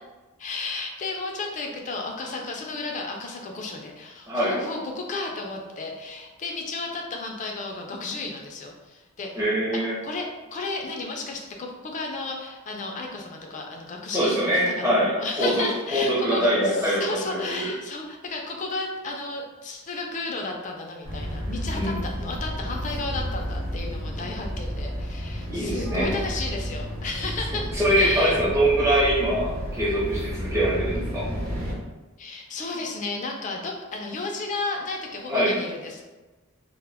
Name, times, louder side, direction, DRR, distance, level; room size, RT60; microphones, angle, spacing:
voice 1, 0.4-9.4 9.7-28.4 32.2-36.1, left 3 dB, 35° left, 2 dB, 0.4 m, -33 dB
voice 2, 9.4-10.0 14.1-15.1 15.4-15.7 15.9-17.7 21.7-22.0 25.5-26.2 27.7-31.3 35.3-35.6, right 1 dB, 15° right, -8 dB, 0.6 m, -23 dB
sound 1, 21.0-31.7, equal, 80° right, 0.8 m, -31 dB
2.2 x 2.0 x 3.3 m, 1.2 s
head